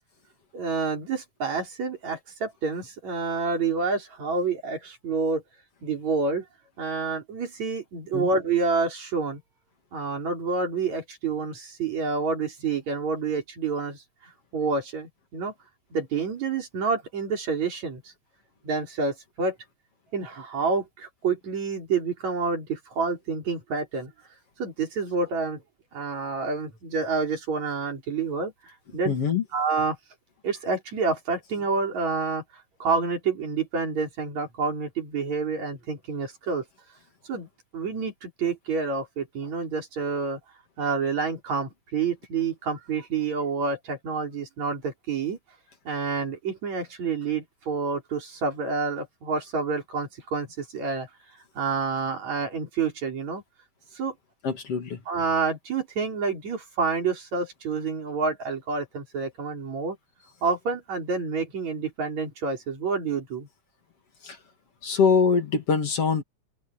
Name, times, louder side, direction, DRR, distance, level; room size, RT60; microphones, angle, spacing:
voice 1, 0.5-5.4 5.8-6.5 6.8-9.4 9.9-15.5 15.9-18.1 18.6-19.6 20.1-24.1 24.6-25.6 25.9-29.1 29.5-30.0 30.4-32.4 32.8-36.6 37.3-37.5 37.7-40.4 40.8-45.4 45.9-51.1 51.6-53.4 53.9-54.2 55.1-60.0 60.4-63.5, right 4 dB, 65° right, 5.7 m, -28 dB
voice 2, 29.1-29.4 54.4-55.0 64.2-64.4 64.8-66.2, left 5 dB, 50° left, 3.2 m, -23 dB
omnidirectional pair, 3.4 m